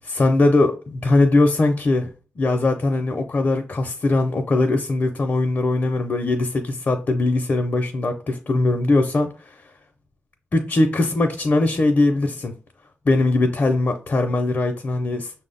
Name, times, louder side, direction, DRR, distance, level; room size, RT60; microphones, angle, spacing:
voice 1, 0.0-2.1 2.4-9.3 10.5-12.5 13.1-15.3, left 2 dB, 45° left, 0.5 m, -20 dB
6.0 x 2.0 x 3.8 m
wide cardioid pair, 120°, 4 cm